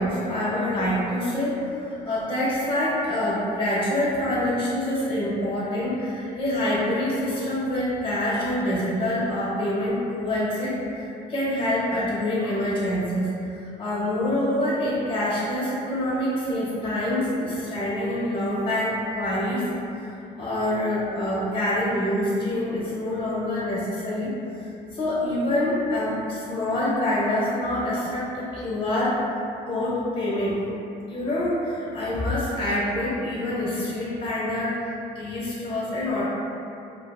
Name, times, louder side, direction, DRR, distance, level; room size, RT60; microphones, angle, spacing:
voice 1, 0.0-19.6 20.4-24.3 24.9-29.2 29.7-30.6 31.0-36.2, left 1 dB, 30° left, -7 dB, 0.5 m, -26 dB
2.4 x 2.3 x 2.2 m, 2.7 s
cardioid pair, 110°, 17 cm